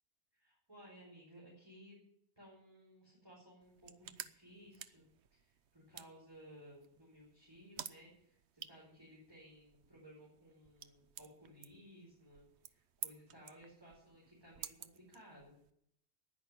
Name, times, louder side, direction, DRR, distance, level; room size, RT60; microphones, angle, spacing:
voice 1, 0.3-2.0 2.4-15.6, equal, 20° right, -5 dB, 4.7 m, -59 dB
sound 1, 3.6-15.7, right 9 dB, 70° right, 1.0 m, -53 dB
10.5 x 10.0 x 9.1 m, 0.74 s
omnidirectional pair, 1.2 m